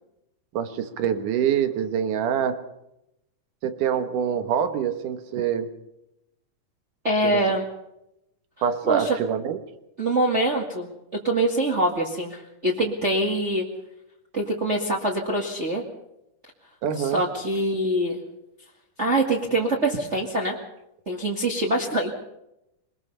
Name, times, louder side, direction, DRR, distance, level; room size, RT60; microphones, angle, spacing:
voice 1, 0.5-2.6 3.6-5.7 7.2-7.4 8.6-9.6 16.8-17.2, right 8 dB, 80° right, 9 dB, 2.9 m, -25 dB
voice 2, 7.0-7.6 8.8-9.2 10.0-13.7 14.3-15.8 17.0-18.2 19.0-20.6 21.1-22.1, right 1 dB, 25° right, -1 dB, 2.1 m, -24 dB
23.5 x 20.5 x 5.6 m, 0.86 s
omnidirectional pair, 3.6 m